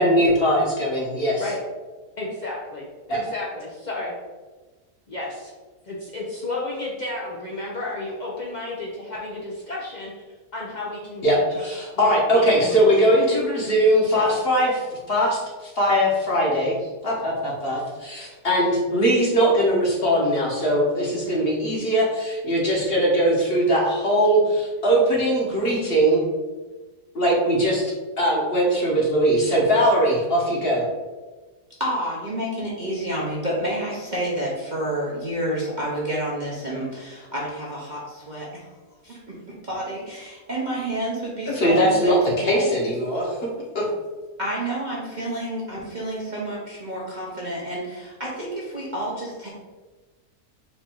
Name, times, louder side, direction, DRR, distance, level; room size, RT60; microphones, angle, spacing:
voice 1, 0.0-1.4 3.1-3.2 11.2-16.8 17.0-26.2 27.1-30.8 41.5-42.2 42.4-43.4 43.7-43.9, equal, 45° left, -3 dB, 1.1 m, -20 dB
voice 2, 2.2-4.1 5.1-5.5 5.9-10.1 10.5-11.7 12.0-13.2 14.0-14.4, left 2 dB, 65° left, -4 dB, 0.4 m, -32 dB
voice 3, 31.8-38.7 39.0-42.8 44.4-49.5, right 1 dB, 40° right, -5 dB, 0.7 m, -29 dB
4.3 x 2.6 x 4.4 m, 1.3 s
omnidirectional pair, 1.7 m